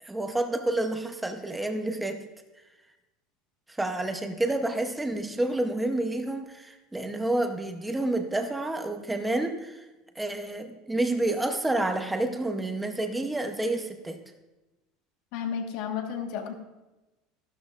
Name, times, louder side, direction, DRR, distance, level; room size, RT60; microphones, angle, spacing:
voice 1, 0.0-2.2 3.8-9.8 10.2-14.2, right 2 dB, 5° right, 6 dB, 0.8 m, -29 dB
voice 2, 15.3-16.5, left 7 dB, 55° left, 4 dB, 1.4 m, -32 dB
14.0 x 12.5 x 2.5 m, 1.1 s
cardioid pair, 170°, 0 cm